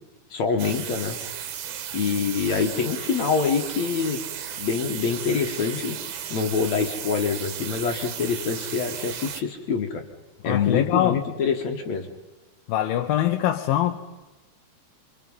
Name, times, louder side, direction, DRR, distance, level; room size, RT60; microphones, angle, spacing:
voice 1, 0.3-1.2 1.9-4.2 4.6-6.0 6.3-10.0 10.4-12.1, left 5 dB, 55° left, 4 dB, 2.4 m, -25 dB
sound 1, 0.6-9.4, right 9 dB, 75° right, 3.2 m, -35 dB
voice 2, 10.5-11.2 12.7-14.0, left 12 dB, 75° left, 4 dB, 2.5 m, -23 dB
28.5 x 25.0 x 5.6 m, 1.1 s
omnidirectional pair, 4.6 m